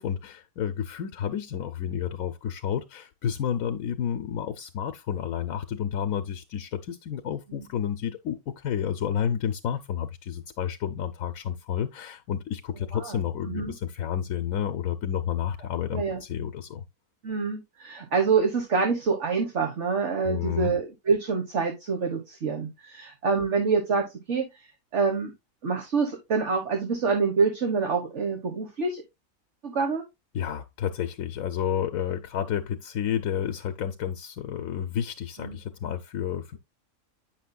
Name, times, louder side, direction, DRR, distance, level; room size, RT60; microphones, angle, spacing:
voice 1, 0.0-16.8 20.2-20.7 30.3-36.6, left 9 dB, 75° left, 1.1 m, -30 dB
voice 2, 17.2-24.5 24.9-25.3 25.6-29.0 29.6-30.0 35.4-35.6, right 5 dB, 55° right, 1.7 m, -26 dB
9.0 x 6.3 x 2.3 m
omnidirectional pair, 1.5 m